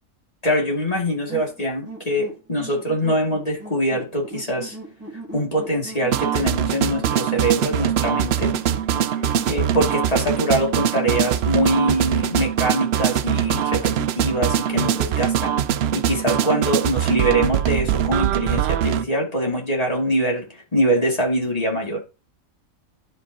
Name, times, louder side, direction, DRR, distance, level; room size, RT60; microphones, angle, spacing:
voice 1, 0.4-4.8 5.3-8.5 9.5-15.6 15.9-22.0, equal, 25° left, -1 dB, 2.5 m, -23 dB
sound 1, 1.3-10.0, right 2 dB, 10° right, 2.4 m, -38 dB
sound 2, 6.1-19.0, right 10 dB, 65° right, 0.7 m, -22 dB
12.0 x 5.4 x 2.8 m, 0.30 s
omnidirectional pair, 1.4 m